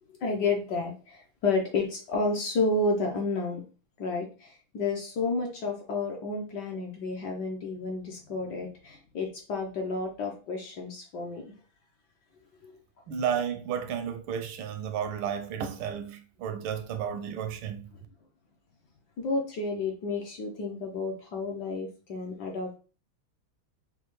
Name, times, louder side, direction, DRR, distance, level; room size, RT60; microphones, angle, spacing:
voice 1, 0.2-3.6 4.0-11.4 12.6-12.7 19.2-22.8, left 3 dB, 65° left, 1.1 m, -31 dB
voice 2, 13.1-17.9, right 8 dB, 80° right, 1.4 m, -32 dB
5.4 x 2.2 x 3.1 m
omnidirectional pair, 2.4 m